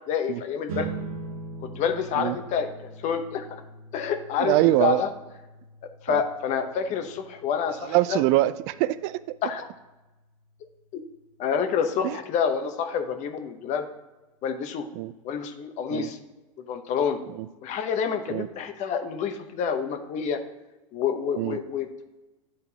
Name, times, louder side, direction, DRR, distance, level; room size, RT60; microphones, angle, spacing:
voice 1, 0.1-0.9 1.6-3.4 3.9-5.1 6.0-8.2 9.4-9.7 10.9-11.0 11.4-13.9 14.4-14.8 15.2-16.2 16.6-17.2 17.6-20.4 20.9-21.9, left 7 dB, 40° left, 8 dB, 0.9 m, -28 dB
sound 1, 0.7-11.4, right 4 dB, 80° right, 1.1 m, -42 dB
voice 2, 4.4-5.0 6.1-6.2 7.8-9.4 12.0-12.2 14.9-15.1 15.9-16.1 17.4-17.5 18.3-18.5 21.4-21.6, right 16 dB, 55° right, 17 dB, 0.4 m, -24 dB
11.0 x 3.9 x 2.8 m, 1.1 s
hypercardioid pair, 105°, 18 cm